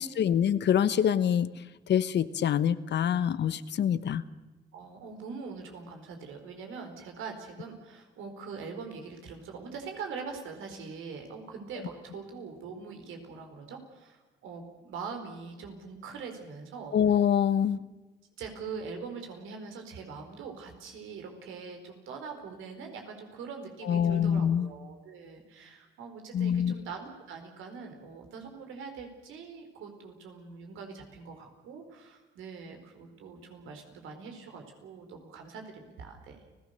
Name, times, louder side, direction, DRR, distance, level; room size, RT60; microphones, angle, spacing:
voice 1, 0.0-1.5 1.9-4.2 16.9-17.8 23.9-24.7 26.3-26.7, left 9 dB, 60° left, 15 dB, 1.0 m, -25 dB
voice 2, 4.7-16.9 18.4-36.4, right 5 dB, 85° right, 4 dB, 4.5 m, -43 dB
30.0 x 17.0 x 6.7 m, 1.2 s
cardioid pair, 90°, 20 cm